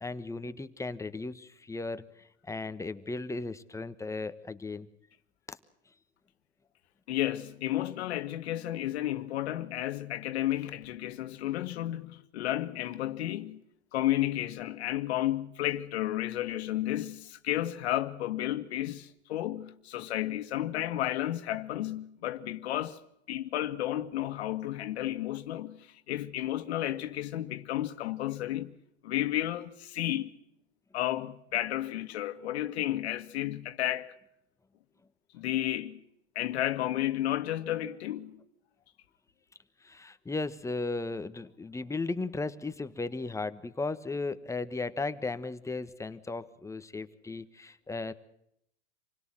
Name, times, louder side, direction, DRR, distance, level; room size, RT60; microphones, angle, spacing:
voice 1, 0.0-2.1 2.5-4.9 5.5-5.6 39.8-48.1, left 3 dB, 10° left, 1.3 m, -36 dB
voice 2, 7.1-13.6 13.9-23.0 23.3-28.7 29.0-30.3 30.9-34.1 35.3-36.0 36.4-38.4, left 13 dB, 70° left, 1.8 m, -32 dB
27.5 x 17.5 x 7.7 m
hypercardioid pair, 115°, 33 cm